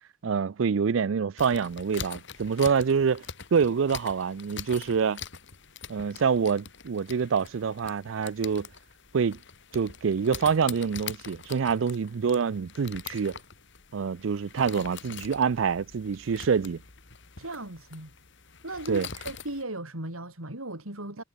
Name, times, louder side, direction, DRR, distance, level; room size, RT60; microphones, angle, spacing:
voice 1, 0.2-3.2 3.5-5.2 5.9-8.7 9.1-9.4 9.7-13.4 13.9-16.8 18.9-19.1, right 6 dB, 65° right, 0.4 m, -26 dB
sound 1, 1.4-19.6, left 6 dB, 60° left, 3.0 m, -44 dB
voice 2, 17.4-18.1 18.6-21.2, right 1 dB, 90° right, 6.7 m, -37 dB
head